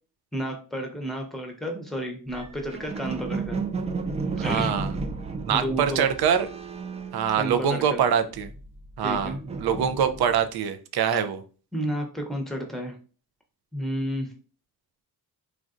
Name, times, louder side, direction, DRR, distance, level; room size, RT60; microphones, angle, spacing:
voice 1, 0.3-3.6 4.4-4.8 5.5-6.1 7.4-8.0 9.0-9.4 11.7-13.0 13.7-14.3, equal, ahead, 2 dB, 0.8 m, -31 dB
sound 1, 2.3-7.9 8.2-10.4, right 4 dB, 20° right, 0.3 m, -33 dB
voice 2, 4.4-4.9 5.4-6.5 7.1-8.5 9.0-11.4, right 8 dB, 70° right, 9 dB, 0.5 m, -24 dB
3.2 x 2.5 x 2.5 m, 0.37 s
cardioid pair, 85°, 40 cm